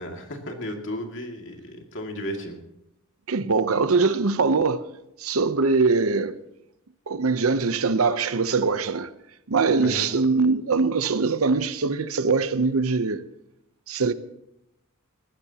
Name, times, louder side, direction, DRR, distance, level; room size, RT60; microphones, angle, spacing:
voice 1, 0.0-2.6 9.8-10.1, equal, 60° left, 2.4 m, -34 dB
voice 2, 3.3-4.8 5.2-6.4 7.1-9.1 9.5-13.2 13.9-14.1, right 4 dB, 75° right, 0.8 m, -22 dB
19.5 x 15.0 x 2.9 m
head